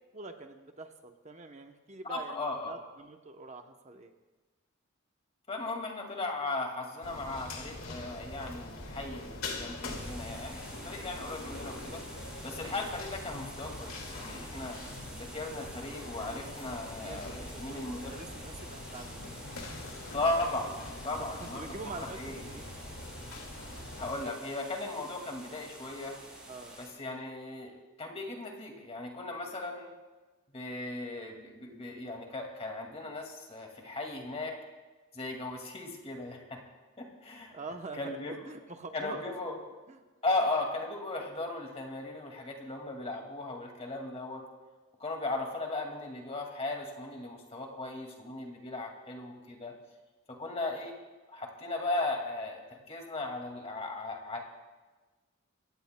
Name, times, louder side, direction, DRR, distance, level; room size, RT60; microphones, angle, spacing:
voice 1, 0.1-4.1 17.0-19.3 21.2-22.8 26.5-26.8 37.5-39.2 39.9-40.0, right 3 dB, 35° right, 5 dB, 0.8 m, -45 dB
voice 2, 2.1-2.8 5.5-12.0 12.4-14.8 15.1-18.2 20.1-20.7 21.0-21.6 22.0-22.4 24.0-26.2 26.8-29.9 30.5-34.5 35.1-36.6 37.0-37.5 37.9-38.4 38.9-39.6 40.2-44.4 45.0-49.7 50.3-50.9 51.3-54.4, left 2 dB, 30° left, 2 dB, 2.1 m, -37 dB
sound 1, 7.0-24.2, left 2 dB, 85° left, 2.1 m, -43 dB
sound 2, 9.8-26.9, right 1 dB, 5° right, 5.0 m, -49 dB
25.5 x 16.5 x 2.2 m, 1.3 s
head